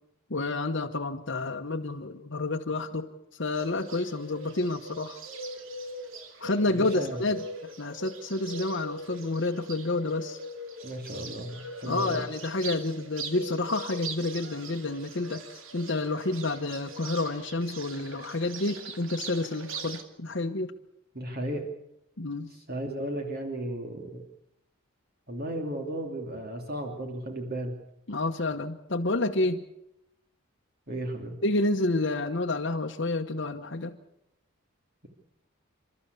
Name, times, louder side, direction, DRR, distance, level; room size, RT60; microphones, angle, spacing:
voice 1, 0.3-3.1 3.3-5.2 6.4-10.4 11.8-15.4 15.7-20.7 22.2-22.5 28.1-29.6 31.4-34.0, left 2 dB, 60° left, 3 dB, 1.1 m, -29 dB
Bird, 3.6-20.0, right 2 dB, 70° right, 2.6 m, -41 dB
voice 2, 6.7-7.2 10.8-12.2 21.1-21.6 22.5-24.2 25.3-27.8 30.9-31.4, right 1 dB, 45° right, 2 dB, 2.9 m, -34 dB
29.0 x 13.0 x 8.3 m, 0.83 s
head